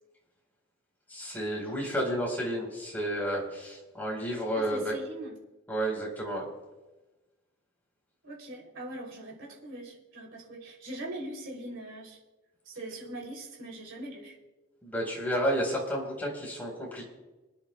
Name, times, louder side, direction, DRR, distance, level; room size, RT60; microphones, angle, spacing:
voice 1, 1.1-5.0 5.7-6.5 14.8-17.1, equal, 10° left, -3 dB, 4.1 m, -31 dB
voice 2, 4.5-5.4 8.2-12.2 12.6-14.3, right 1 dB, 60° right, -2 dB, 3.1 m, -41 dB
28.0 x 10.5 x 2.3 m, 1.1 s
head